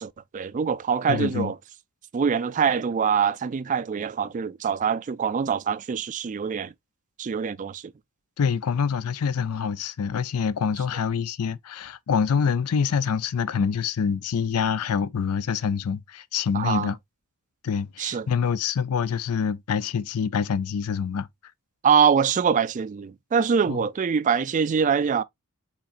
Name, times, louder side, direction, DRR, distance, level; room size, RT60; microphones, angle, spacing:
voice 1, 0.0-1.6 2.1-6.7 7.2-7.8 16.5-16.9 18.0-18.3 21.8-25.2, right 6 dB, 35° right, 0.3 m, -24 dB
voice 2, 1.1-1.5 8.4-17.0 17.6-21.3 23.7-23.8, left 6 dB, 90° left, 0.5 m, -26 dB
5.7 x 3.7 x 2.4 m
head